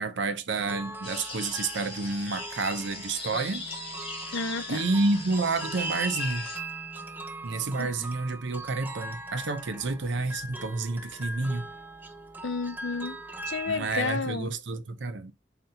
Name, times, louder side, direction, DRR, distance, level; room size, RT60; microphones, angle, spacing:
voice 1, 0.0-3.7 4.7-6.5 7.4-11.7 13.7-15.3, right 3 dB, 70° right, 0.6 m, -29 dB
sound 1, 0.6-14.3, right 2 dB, 10° right, 0.5 m, -41 dB
sound 2, 1.0-6.6, left 2 dB, 30° left, 1.5 m, -38 dB
voice 2, 4.3-4.6 7.8-7.9 12.4-13.2 13.5-14.5, left 4 dB, 85° left, 0.5 m, -31 dB
4.3 x 4.1 x 2.7 m
head